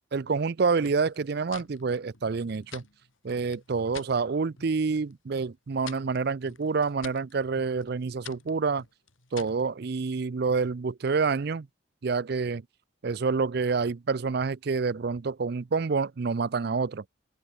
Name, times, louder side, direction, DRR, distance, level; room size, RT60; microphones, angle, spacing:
voice 1, 0.1-2.8 3.2-8.8 9.3-11.7 12.0-12.6 13.0-17.0, right 4 dB, 50° right, 0.5 m, -28 dB
sound 1, 0.8-4.1 4.5-5.1 5.4-9.7, left 7 dB, 80° left, 5.9 m, -48 dB
open air
head